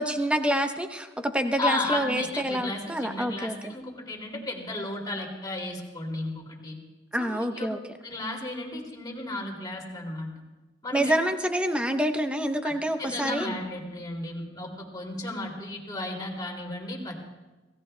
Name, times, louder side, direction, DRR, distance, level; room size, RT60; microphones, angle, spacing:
voice 1, 0.0-3.7 7.1-7.8 10.9-13.5, right 1 dB, 5° right, 6 dB, 0.8 m, -27 dB
voice 2, 1.6-6.8 7.2-7.7 8.0-10.3 10.8-11.1 12.6-12.7 13.0-17.2, left 2 dB, 20° left, -1 dB, 2.5 m, -34 dB
27.5 x 17.0 x 2.2 m, 1.2 s
head